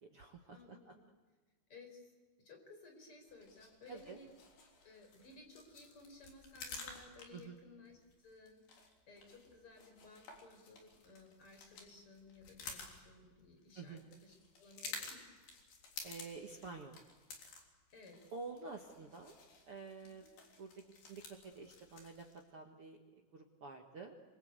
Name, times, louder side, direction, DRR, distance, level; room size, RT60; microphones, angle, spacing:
voice 1, 0.0-0.9 3.9-4.2 7.3-7.6 13.7-14.1 16.0-16.9 18.3-19.3 19.7-20.2 20.6-20.7 21.1-23.0 23.3-24.2, right 4 dB, 65° right, 2 dB, 1.3 m, -49 dB
voice 2, 0.5-1.1 1.7-2.1 2.4-4.3 4.8-8.0 8.2-15.2 17.9-18.2 20.2-20.3, left 3 dB, 30° left, 4 dB, 5.7 m, -58 dB
sound 1, 3.3-22.4, left 4 dB, 55° left, 5.2 m, -53 dB
26.5 x 25.5 x 8.1 m, 1.3 s
omnidirectional pair, 5.2 m